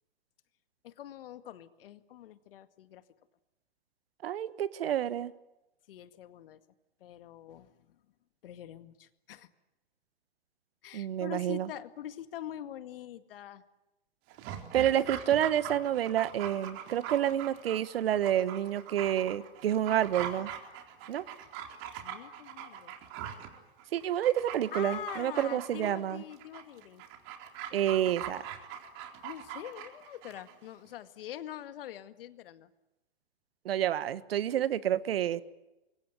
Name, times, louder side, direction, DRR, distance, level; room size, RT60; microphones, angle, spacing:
voice 1, 0.8-3.0 5.9-6.6 7.0-8.0 8.4-9.5 10.8-13.6 22.0-22.9 24.7-27.0 29.2-32.7, left 11 dB, 60° left, 11 dB, 2.0 m, -44 dB
voice 2, 4.2-5.3 10.9-11.7 14.7-20.5 21.1-21.2 23.9-26.2 27.7-28.4 33.6-35.4, right 11 dB, 70° right, 16 dB, 1.5 m, -29 dB
Dog, 14.3-30.6 30.9-31.0, right 9 dB, 40° right, 3.9 m, -42 dB
25.5 x 23.5 x 9.4 m, 0.96 s
hypercardioid pair, 125°, 31 cm